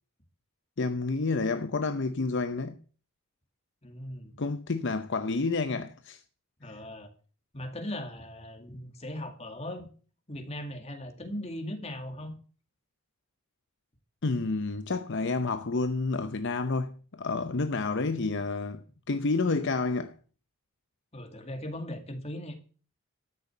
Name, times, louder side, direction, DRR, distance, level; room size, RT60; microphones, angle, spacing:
voice 1, 0.8-2.8 4.4-6.2 14.2-20.1, left 3 dB, 55° left, 0.7 m, -29 dB
voice 2, 3.8-4.4 6.6-7.1 7.5-9.9 10.3-12.4 21.1-22.5, left 1 dB, 30° left, 2.2 m, -39 dB
13.5 x 6.6 x 8.3 m
head